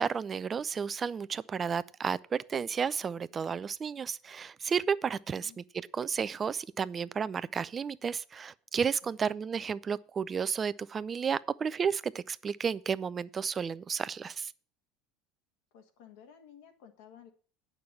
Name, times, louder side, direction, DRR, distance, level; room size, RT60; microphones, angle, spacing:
voice 1, 0.0-14.5, right 6 dB, 30° right, 0.5 m, -32 dB
voice 2, 9.0-9.5 15.7-17.3, left 8 dB, 65° left, 1.8 m, -55 dB
9.4 x 6.0 x 6.9 m
figure-of-eight pair, 70°, 0 cm